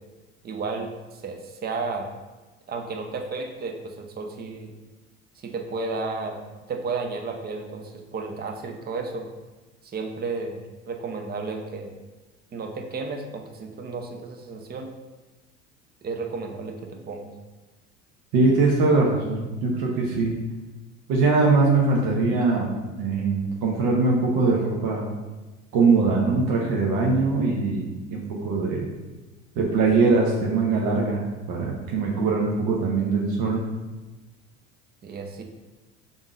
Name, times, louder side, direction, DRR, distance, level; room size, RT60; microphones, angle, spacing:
voice 1, 0.4-2.1 2.7-4.7 5.4-6.4 6.7-9.3 9.8-11.9 12.5-14.9 16.0-17.3 35.0-35.4, right 4 dB, 25° right, 4 dB, 0.7 m, -33 dB
voice 2, 18.3-20.3 21.1-22.7 23.0-25.0 25.7-28.9 29.6-33.6, right 3 dB, 55° right, -2 dB, 0.9 m, -22 dB
3.6 x 2.7 x 4.7 m, 1.2 s
hypercardioid pair, 70°, 36 cm